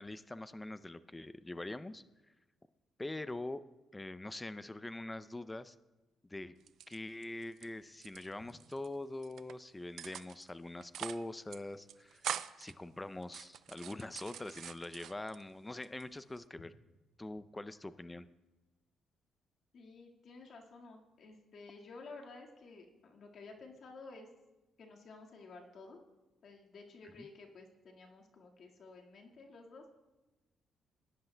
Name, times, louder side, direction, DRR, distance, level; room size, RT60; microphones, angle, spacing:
voice 1, 0.0-2.0 3.0-3.6 3.9-5.8 6.3-6.5 6.9-12.3 12.6-16.7 17.2-18.3 27.2-27.3, left 2 dB, 15° left, 14 dB, 0.4 m, -43 dB
sound 1, 6.6-7.7 7.9-8.9 9.2-9.5 10.0-10.5 10.8-11.3 11.5-11.6 11.9-12.7 13.2-15.4 15.8-16.5, right 10 dB, 70° right, 0.4 m, -44 dB
voice 2, 19.7-24.3 24.8-26.0 26.4-29.9, left 3 dB, 60° left, 0 dB, 1.8 m, -53 dB
19.0 x 10.5 x 2.2 m, 1.1 s
cardioid pair, 90°, 0 cm